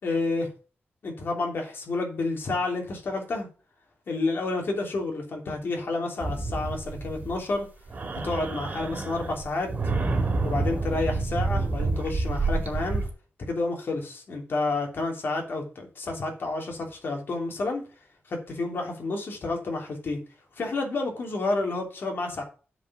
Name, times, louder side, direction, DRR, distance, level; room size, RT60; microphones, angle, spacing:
voice 1, 0.0-0.5 1.0-3.5 4.1-7.7 8.2-9.7 10.4-13.1 13.4-17.8 18.3-20.2 20.6-22.4, left 3 dB, 60° left, 1 dB, 3.1 m, -30 dB
sound 1, 6.2-7.6 7.9-13.1, right 3 dB, 40° right, 2.2 m, -28 dB
8.1 x 5.1 x 7.3 m, 0.37 s
wide cardioid pair, 150°, 4 cm